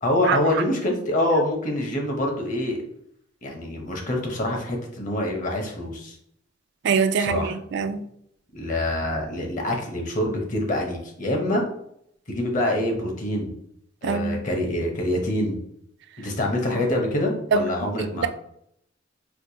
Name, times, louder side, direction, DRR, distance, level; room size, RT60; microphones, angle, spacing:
voice 1, 0.0-2.8 3.4-6.2 7.2-7.5 8.5-11.6 12.3-13.6 14.0-15.6 16.2-18.3, left 1 dB, 40° left, 0.8 m, -25 dB
voice 2, 6.8-8.0 14.0-14.4 17.5-17.6 18.0-18.3, right 5 dB, 60° right, 0.3 m, -23 dB
4.5 x 2.1 x 2.7 m
head